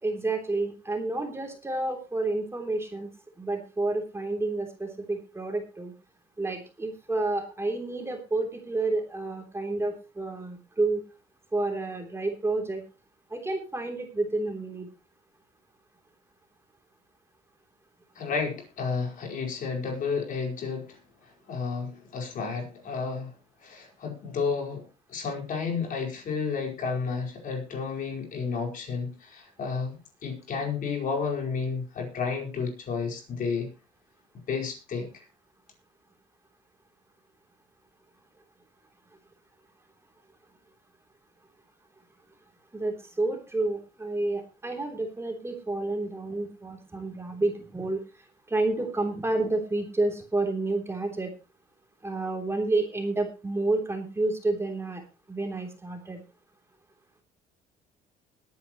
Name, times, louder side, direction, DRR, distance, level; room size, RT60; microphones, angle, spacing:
voice 1, 0.0-3.1 3.4-5.9 6.4-11.0 11.5-12.8 13.3-14.9 42.7-48.0 48.5-51.3 52.0-55.0 55.3-56.2, right 2 dB, 15° right, 3.3 m, -30 dB
voice 2, 18.1-21.0 21.5-23.3 23.6-24.8 25.1-33.7 34.5-35.1, left 5 dB, 55° left, 4.7 m, -31 dB
20.5 x 9.7 x 3.1 m
cardioid pair, 110°, 17 cm